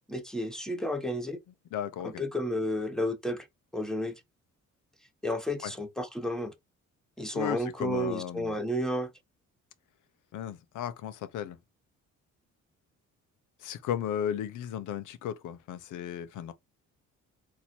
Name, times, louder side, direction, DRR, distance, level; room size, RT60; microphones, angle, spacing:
voice 1, 0.1-1.4 2.0-3.5 3.7-4.1 5.2-6.5 7.2-9.1, equal, ahead, 1.0 m, -32 dB
voice 2, 1.7-2.2 5.6-5.7 7.3-8.5 10.3-11.6 13.6-16.5, left 10 dB, 85° left, 0.8 m, -35 dB
4.2 x 2.8 x 4.3 m
cardioid pair, 90°, 30 cm